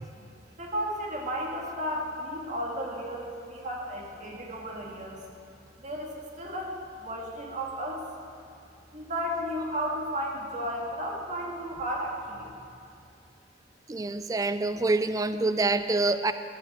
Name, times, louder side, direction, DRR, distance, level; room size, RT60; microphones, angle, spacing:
voice 1, 0.6-5.2 5.8-8.0 8.9-12.5, equal, 45° right, -2 dB, 2.1 m, -34 dB
voice 2, 13.9-16.3, right 2 dB, 20° right, 11 dB, 0.3 m, -26 dB
14.5 x 6.0 x 7.9 m, 2.6 s
head